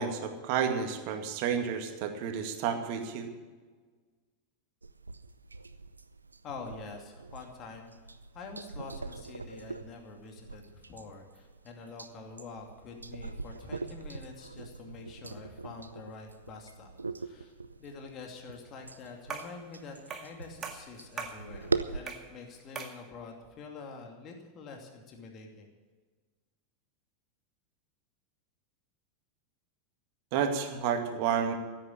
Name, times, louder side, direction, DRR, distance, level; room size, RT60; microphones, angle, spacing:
voice 1, 0.0-3.3 30.3-31.5, right 7 dB, 50° right, 5 dB, 2.1 m, -30 dB
sound 1, 4.8-22.0, right 3 dB, 85° right, 0.6 m, -41 dB
voice 2, 6.4-7.9 8.3-16.9 17.2-17.5 17.8-25.7, left 4 dB, 35° left, 2 dB, 2.5 m, -46 dB
sound 2, 19.3-19.6 20.1-20.4 20.6-21.4 22.1-22.3 22.8-23.0, right 5 dB, 30° right, 2.0 m, -40 dB
15.5 x 8.8 x 8.7 m, 1.4 s
figure-of-eight pair, 85°, 0 cm